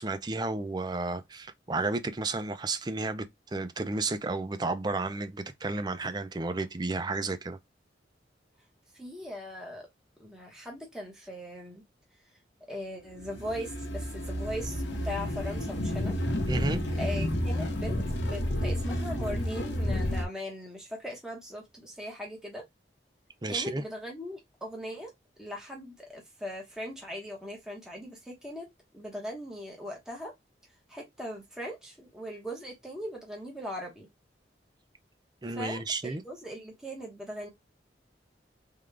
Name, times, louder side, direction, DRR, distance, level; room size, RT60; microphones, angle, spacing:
voice 1, 0.0-7.6 16.5-16.8 23.4-23.8 35.4-36.2, right 3 dB, 25° right, 0.4 m, -32 dB
voice 2, 8.9-9.9 10.2-11.8 12.7-16.2 17.0-22.6 23.5-25.1 25.4-30.3 30.9-34.1 35.5-37.5, equal, 5° right, 1.0 m, -39 dB
sound 1, 13.2-20.2, left 1 dB, 75° left, 1.0 m, -31 dB
3.7 x 2.3 x 3.2 m
head